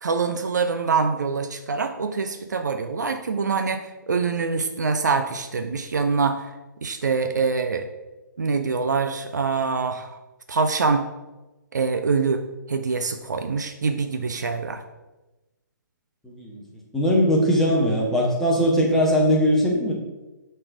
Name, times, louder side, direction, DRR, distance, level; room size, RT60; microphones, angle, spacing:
voice 1, 0.0-6.5 6.8-7.9 8.4-10.1 10.5-11.0 11.7-12.4 12.7-14.8, right 4 dB, 60° right, 7 dB, 0.7 m, -24 dB
voice 2, 16.2-16.6 16.9-19.9, equal, 5° left, -4 dB, 1.5 m, -20 dB
8.5 x 4.5 x 5.2 m, 1.1 s
figure-of-eight pair, 130°, 11 cm